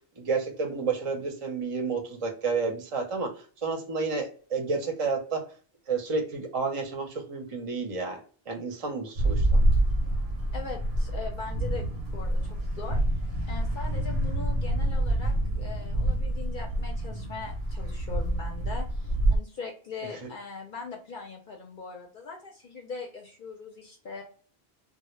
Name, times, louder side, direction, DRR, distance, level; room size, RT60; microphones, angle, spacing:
voice 1, 0.2-5.4 5.9-8.2 8.5-9.5 20.2-20.3, right 4 dB, 40° right, 2 dB, 0.6 m, -30 dB
sound 1, 9.2-19.4, right 1 dB, 80° right, 0.8 m, -27 dB
voice 2, 10.5-11.9 12.1-13.0 13.5-24.2, left 4 dB, 60° left, 0 dB, 0.6 m, -40 dB
2.1 x 2.0 x 3.0 m, 0.41 s
omnidirectional pair, 1.1 m